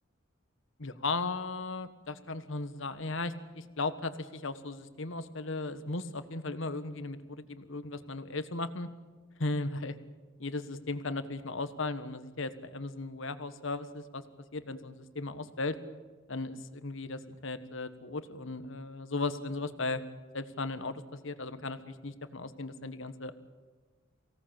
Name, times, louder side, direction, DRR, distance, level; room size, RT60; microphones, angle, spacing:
voice 1, 0.8-8.9 9.4-9.9 10.4-14.2 14.5-15.8 16.3-20.0 20.3-23.3, left 3 dB, 65° left, 11 dB, 1.4 m, -36 dB
24.0 x 17.5 x 8.9 m, 1.3 s
head